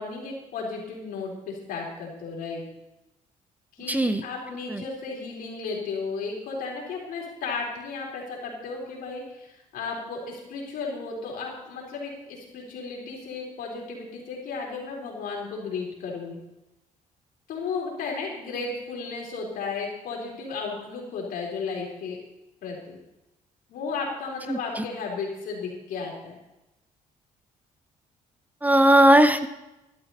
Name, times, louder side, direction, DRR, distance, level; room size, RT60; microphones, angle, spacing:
voice 1, 0.0-2.6 3.8-16.4 17.5-22.2 22.6-23.0 23.7-26.4, left 4 dB, 80° left, -2 dB, 4.1 m, -34 dB
voice 2, 3.9-4.2 4.7-4.8 24.5-24.8 28.6-29.5, right 1 dB, 10° right, 11 dB, 0.6 m, -18 dB
13.0 x 11.5 x 4.2 m, 0.96 s
cardioid pair, 105°, 15 cm